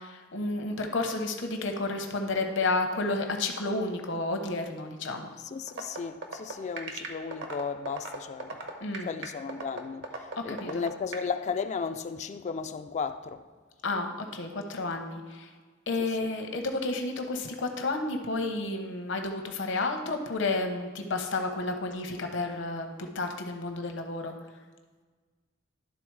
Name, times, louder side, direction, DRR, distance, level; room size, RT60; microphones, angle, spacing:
voice 1, 0.0-5.3 8.8-9.1 10.4-10.8 13.8-15.5 15.9-24.3, left 2 dB, 65° left, 0.9 m, -31 dB
voice 2, 5.4-8.6 9.0-13.4, left 5 dB, 35° left, 0.3 m, -35 dB
sound 1, 5.7-11.3, right 3 dB, 65° right, 1.0 m, -36 dB
11.5 x 3.9 x 4.7 m
head